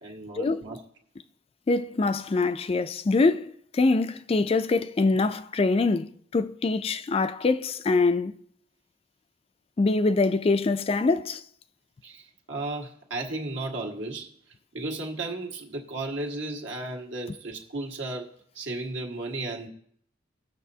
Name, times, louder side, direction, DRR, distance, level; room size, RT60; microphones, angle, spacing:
voice 1, 0.0-0.8 12.0-14.3 14.7-19.7, right 2 dB, 75° right, 1.6 m, -34 dB
voice 2, 1.7-8.4 9.8-11.4, left 3 dB, 30° left, 0.3 m, -24 dB
19.0 x 6.5 x 2.8 m
head